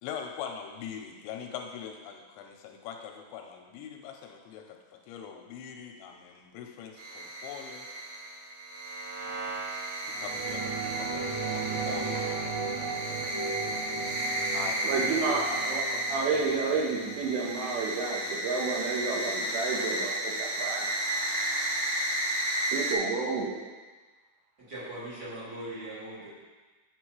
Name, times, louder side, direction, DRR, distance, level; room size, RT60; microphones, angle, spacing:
voice 1, 0.0-7.9 9.2-9.8 10.1-12.3 14.5-14.8, left 8 dB, 85° left, 2 dB, 2.9 m, -42 dB
sound 1, 7.0-22.9, right 1 dB, 65° right, 2.1 m, -33 dB
sound 2, 10.1-19.1 19.5-19.6, right 4 dB, 50° right, 3.1 m, -37 dB
voice 2, 14.8-20.9 22.7-23.6, right 4 dB, 85° right, -1 dB, 3.7 m, -31 dB
voice 3, 24.6-26.3, right 1 dB, 30° right, -10 dB, 1.9 m, -40 dB
9.2 x 7.5 x 3.1 m, 1.3 s
omnidirectional pair, 5.5 m